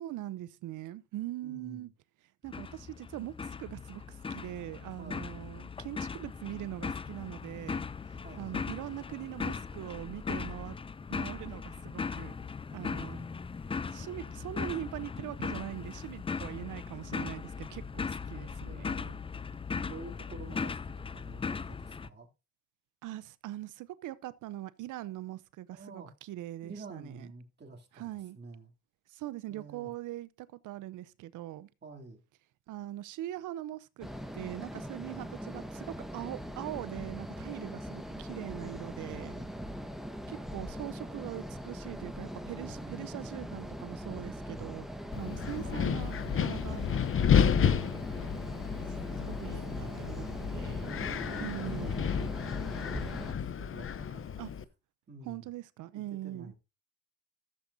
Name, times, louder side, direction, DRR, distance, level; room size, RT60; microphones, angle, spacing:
voice 1, 0.0-1.9 2.4-4.0 4.3-7.9 8.4-10.8 11.1-12.3 12.7-13.2 13.9-18.9 23.0-27.3 28.0-28.4 29.1-31.7 32.7-34.1 34.3-39.3 40.3-44.9 45.2-46.8 47.6-47.9 49.2-50.3 50.5-50.9 51.4-52.0 54.4-54.5 55.3-56.5, right 14 dB, 85° right, 0.7 m, -41 dB
voice 2, 1.4-1.9 5.0-5.4 8.2-8.6 12.7-13.4 18.6-19.2 19.5-22.3 25.7-26.1 26.6-28.7 29.5-29.9 31.8-32.2 39.1-39.6 42.4-43.3 45.6-46.1 47.4-48.0 49.0-50.1 50.8-52.7 52.9-54.3 55.1-55.5 55.9-56.6, right 3 dB, 35° right, 2.8 m, -49 dB
sound 1, 2.5-22.1, left 5 dB, 20° left, 0.4 m, -38 dB
sound 2, 34.0-53.3, equal, ahead, 1.4 m, -41 dB
Wind, 45.1-54.6, left 7 dB, 45° left, 0.8 m, -31 dB
14.5 x 7.5 x 2.7 m
cardioid pair, 90°, 30 cm